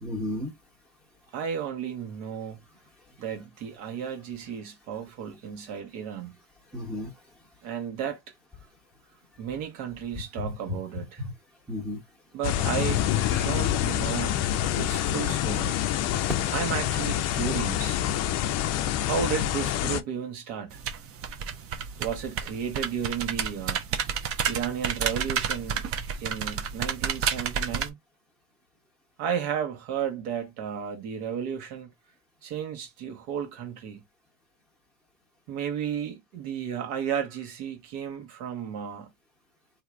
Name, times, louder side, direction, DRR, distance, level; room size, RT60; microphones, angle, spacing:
voice 1, 0.0-0.5 6.7-7.1 10.4-10.8 11.2-11.3 11.7-12.0 13.2-13.5 16.1-16.3, left 2 dB, 5° right, 1.0 m, -33 dB
voice 2, 1.3-2.6 3.2-6.4 7.6-8.2 9.4-11.2 12.3-13.0 13.4-15.8 16.5-18.0 19.0-20.8 22.0-23.8 24.5-25.8 26.2-28.0 29.2-31.9 32.4-34.0 35.5-39.1, right 8 dB, 70° right, 1.3 m, -33 dB
sound 1, 12.4-20.0, left 12 dB, 40° left, 0.4 m, -26 dB
sound 2, 20.7-27.9, right 7 dB, 35° right, 0.5 m, -31 dB
3.0 x 2.7 x 2.4 m
supercardioid pair, 95°, 43 cm